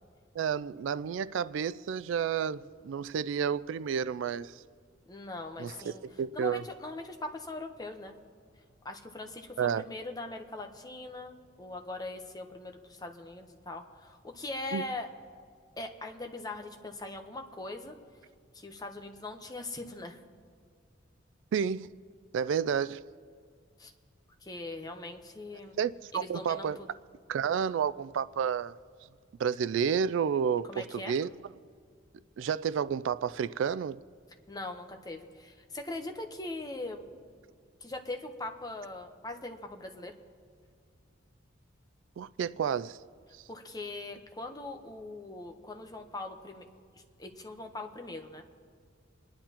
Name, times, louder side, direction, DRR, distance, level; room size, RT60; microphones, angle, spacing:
voice 1, 0.4-4.6 5.6-6.6 9.6-9.8 14.7-14.8 21.5-21.9 22.3-23.0 25.8-26.8 27.3-28.8 29.4-31.3 32.4-34.0 42.2-43.0, right 7 dB, 75° right, 0.3 m, -30 dB
voice 2, 5.1-6.0 6.3-8.1 8.8-15.1 15.8-18.0 18.5-20.2 23.8-23.9 24.4-25.8 26.1-26.9 30.7-31.1 34.5-37.1 37.8-40.1 43.5-46.7 46.9-48.4, left 2 dB, 20° left, 0.9 m, -41 dB
27.5 x 10.0 x 2.9 m
head